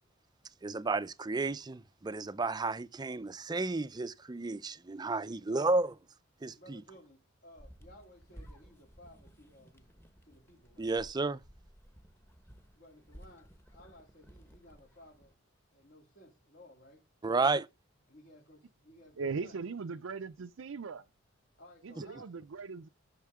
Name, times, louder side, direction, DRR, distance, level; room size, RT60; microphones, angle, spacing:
voice 1, 0.6-5.9 6.4-6.8 10.8-11.4 17.2-17.7, right 3 dB, 20° right, 0.5 m, -32 dB
voice 2, 5.3-5.7 6.5-9.9 10.2-10.9 12.7-15.3 15.7-17.0 18.1-19.6 21.6-22.4, left 1 dB, 55° left, 2.4 m, -57 dB
sound 1, 7.6-15.3, equal, 10° left, 1.2 m, -56 dB
voice 3, 19.2-21.0 21.8-22.9, right 4 dB, 80° right, 0.5 m, -39 dB
12.0 x 6.6 x 3.6 m
head